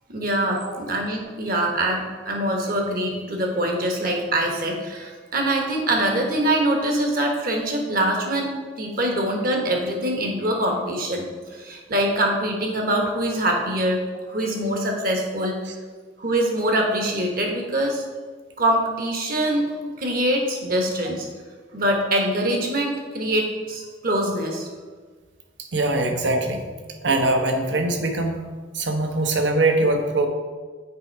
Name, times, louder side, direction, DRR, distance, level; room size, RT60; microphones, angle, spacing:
voice 1, 0.1-11.2 11.5-14.0 14.3-15.6 16.2-18.0 18.6-19.7 20.0-21.3 21.7-24.7, right 1 dB, 50° right, 1 dB, 1.3 m, -24 dB
voice 2, 25.6-26.7 27.0-28.4 28.7-30.3, right 2 dB, 70° right, 4 dB, 0.9 m, -22 dB
6.8 x 4.9 x 4.6 m, 1.4 s
head